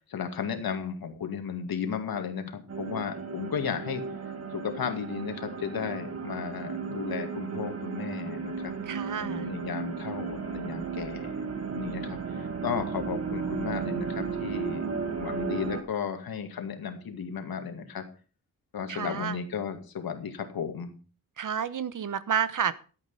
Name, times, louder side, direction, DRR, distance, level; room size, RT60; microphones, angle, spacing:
voice 1, 0.1-4.0 4.5-8.7 9.2-11.4 11.7-14.9 15.2-18.0 18.7-20.9, left 7 dB, 90° left, 6 dB, 2.3 m, -34 dB
sound 1, 2.7-15.8, right 5 dB, 45° right, 1.8 m, -34 dB
voice 2, 8.9-9.5 18.9-19.4 21.4-22.7, right 8 dB, 60° right, 15 dB, 1.0 m, -30 dB
13.5 x 8.4 x 5.6 m, 0.38 s
wide cardioid pair, 130°, 35 cm